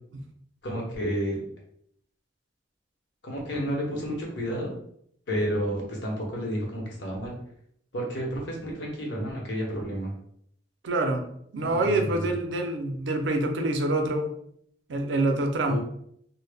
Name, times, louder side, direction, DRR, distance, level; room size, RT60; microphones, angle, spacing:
voice 1, 0.6-1.4 3.2-4.7 5.3-7.4 7.9-10.1 11.6-12.2 15.7-15.8, equal, 70° left, -1 dB, 0.8 m, -31 dB
voice 2, 10.8-11.2 11.5-14.3 14.9-15.8, right 2 dB, 80° right, 4 dB, 0.4 m, -26 dB
2.0 x 2.0 x 3.3 m, 0.69 s
head